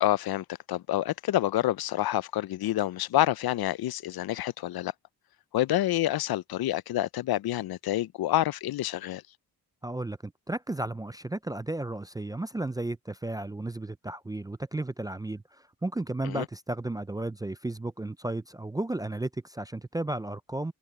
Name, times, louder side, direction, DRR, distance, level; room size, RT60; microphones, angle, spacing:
voice 1, 0.0-4.9 5.5-9.2 16.2-16.5, left 14 dB, 75° left, 0.5 m, -28 dB
voice 2, 9.8-15.4 15.8-20.7, right 2 dB, 10° right, 0.3 m, -33 dB
cardioid pair, 85°, 37 cm